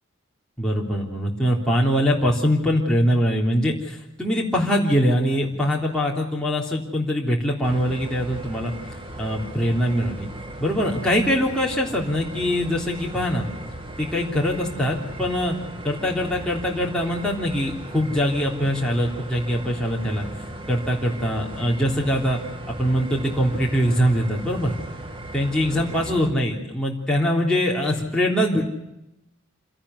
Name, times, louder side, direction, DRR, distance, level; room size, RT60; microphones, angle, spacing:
voice 1, 0.6-8.7 9.2-10.3 10.6-13.5 14.0-15.5 15.8-20.3 20.7-22.4 22.8-24.8 25.3-28.6, equal, 5° left, -4 dB, 3.5 m, -23 dB
sound 1, 7.6-26.3, right 1 dB, 25° right, 2.3 m, -37 dB
27.5 x 17.5 x 8.1 m, 0.90 s
head